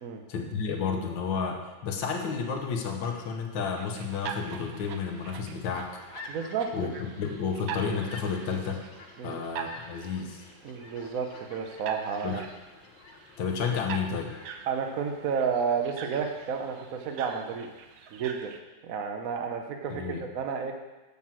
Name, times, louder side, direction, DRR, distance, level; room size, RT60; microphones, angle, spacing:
voice 1, 0.3-6.0 6.7-6.9 7.2-8.8 9.2-10.4 12.2-12.4 13.4-14.4 19.9-20.2, left 6 dB, 75° left, 3 dB, 1.7 m, -31 dB
sound 1, 3.7-18.6, right 7 dB, 80° right, 1.5 m, -44 dB
sound 2, 5.7-16.5, left 3 dB, 90° left, 1.8 m, -50 dB
voice 2, 6.3-7.0 9.2-9.4 10.6-12.5 14.7-17.7 18.1-18.5 18.8-20.7, right 6 dB, 60° right, 4 dB, 0.9 m, -31 dB
7.1 x 6.2 x 7.4 m, 1.2 s
omnidirectional pair, 2.2 m